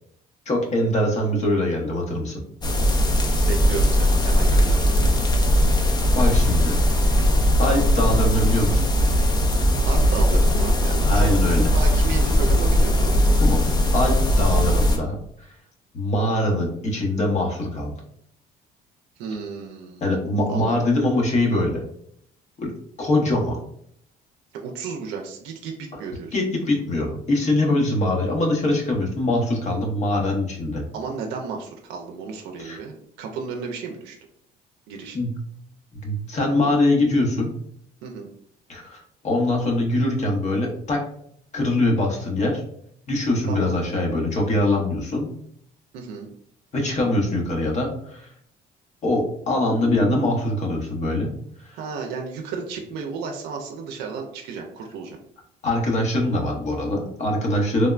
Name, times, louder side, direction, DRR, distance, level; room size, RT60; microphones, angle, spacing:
voice 1, 0.5-2.4 6.1-6.8 7.6-8.9 11.1-11.6 13.4-13.6 13.9-15.2 15.9-17.9 20.0-21.8 22.6-22.7 23.0-23.6 26.3-30.8 32.6-32.8 35.1-35.3 36.0-37.5 38.7-41.0 41.5-42.6 43.1-45.3 46.7-48.3 49.0-51.3 55.6-57.9, left 1 dB, 45° left, 0 dB, 0.9 m, -23 dB
sound 1, 2.6-15.0, equal, 25° left, 0.5 m, -19 dB
voice 2, 3.4-4.9 9.8-13.3 19.2-20.0 20.5-20.8 24.5-26.3 30.9-34.2 34.9-35.2 38.0-38.3 43.5-43.7 45.9-46.3 51.7-55.2, right 5 dB, 90° right, 2 dB, 0.5 m, -33 dB
3.4 x 2.1 x 2.4 m, 0.67 s
cardioid pair, 110°, 17 cm